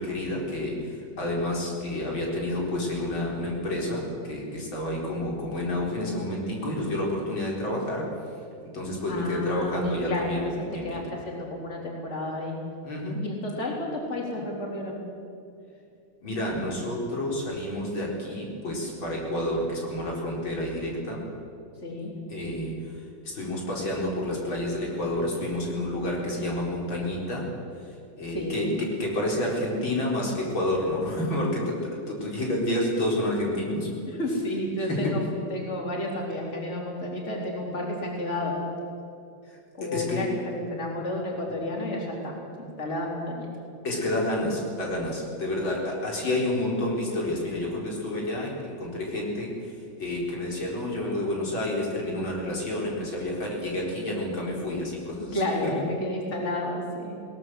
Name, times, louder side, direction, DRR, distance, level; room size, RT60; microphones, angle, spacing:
voice 1, 0.0-8.1 8.7-11.0 12.8-13.2 16.2-21.2 22.3-27.5 27.8-33.9 34.9-35.2 39.4-40.3 43.8-55.7, left 1 dB, 90° left, -2 dB, 5.3 m, -29 dB
voice 2, 9.1-10.5 10.8-12.6 13.2-15.0 21.8-22.2 28.3-28.8 34.1-38.6 39.8-43.5 55.3-57.3, left 1 dB, 35° left, -1 dB, 4.1 m, -31 dB
21.5 x 19.0 x 7.8 m, 2.5 s
omnidirectional pair, 2.1 m